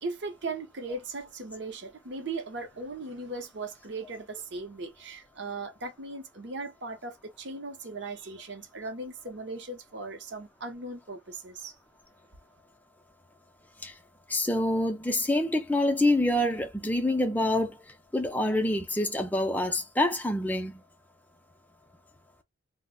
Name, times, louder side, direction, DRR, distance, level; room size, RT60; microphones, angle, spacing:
voice 1, 0.0-11.8, right 3 dB, 55° right, 0.7 m, -38 dB
voice 2, 14.3-17.8 18.1-20.8, left 1 dB, 10° left, 0.5 m, -26 dB
2.5 x 2.0 x 3.7 m
head